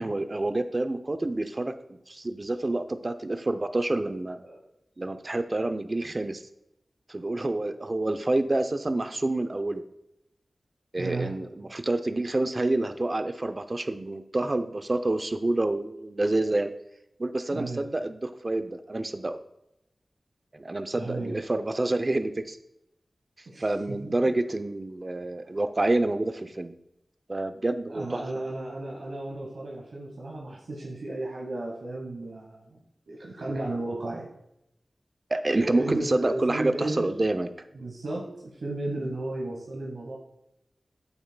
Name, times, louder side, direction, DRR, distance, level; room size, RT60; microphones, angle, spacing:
voice 1, 0.0-1.7 2.1-4.4 5.0-6.4 7.1-9.8 10.9-16.7 17.2-19.4 20.5-22.6 23.6-26.7 27.3-28.2 35.3-37.5, right 2 dB, 40° right, 10 dB, 0.5 m, -28 dB
voice 2, 11.0-11.3 17.5-17.8 21.0-21.4 23.5-23.6 24.0-24.1 25.4-25.5 27.9-32.8 33.1-34.3 35.7-37.1 37.7-40.2, right 2 dB, 85° right, -2 dB, 1.1 m, -34 dB
8.4 x 7.2 x 2.2 m, 0.82 s
wide cardioid pair, 55°, 0 cm